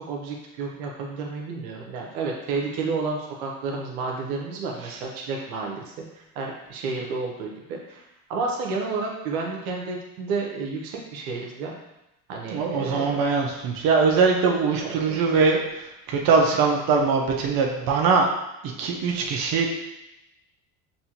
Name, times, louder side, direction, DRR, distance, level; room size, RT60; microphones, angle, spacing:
voice 1, 0.1-8.0 8.3-11.7 12.3-13.2 14.8-15.2, right 4 dB, 90° right, 0 dB, 0.9 m, -31 dB
voice 2, 12.5-18.3 18.8-19.7, right 4 dB, 55° right, 0 dB, 0.8 m, -22 dB
5.5 x 2.6 x 2.9 m, 0.92 s
supercardioid pair, 100°, 42 cm